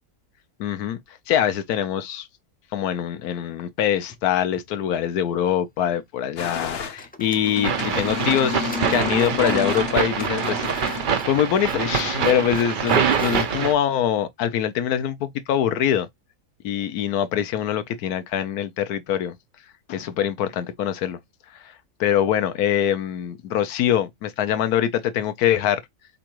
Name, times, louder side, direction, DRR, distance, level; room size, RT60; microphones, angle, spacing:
voice 1, 0.6-1.0 1.3-2.3 2.7-16.1 16.6-19.3 19.9-21.2 21.5-21.6 22.0-25.8, left 10 dB, 70° left, 1.2 m, -24 dB
sound 1, 3.9-4.7 4.9-5.0 6.5-6.7 7.0-13.6, left 1 dB, 10° left, 0.4 m, -42 dB
sound 2, 6.4-7.0 7.4-11.3 11.7-11.9, left 7 dB, 50° left, 0.8 m, -31 dB
sound 3, 7.6-13.7, right 7 dB, 65° right, 0.5 m, -24 dB
4.4 x 3.8 x 3.0 m
omnidirectional pair, 1.8 m